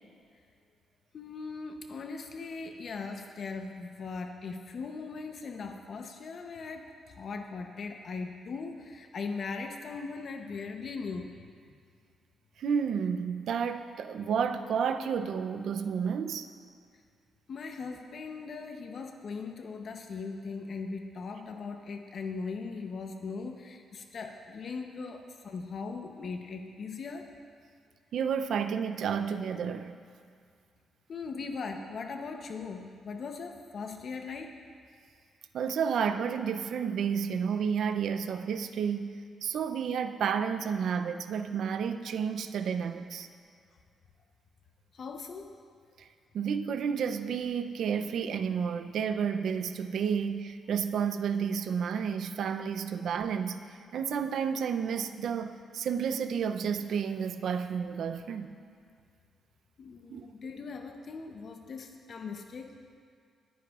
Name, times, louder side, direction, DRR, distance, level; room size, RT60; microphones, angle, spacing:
voice 1, 1.1-11.3 17.5-27.3 31.1-34.5 44.9-45.5 59.8-62.7, left 4 dB, 55° left, 4 dB, 0.8 m, -39 dB
voice 2, 12.6-16.5 28.1-30.0 35.5-43.3 46.3-53.6 53.9-58.5 60.1-60.3, right 7 dB, 70° right, 9 dB, 0.5 m, -31 dB
25.0 x 9.4 x 2.4 m, 2.2 s
cardioid pair, 85°, 0 cm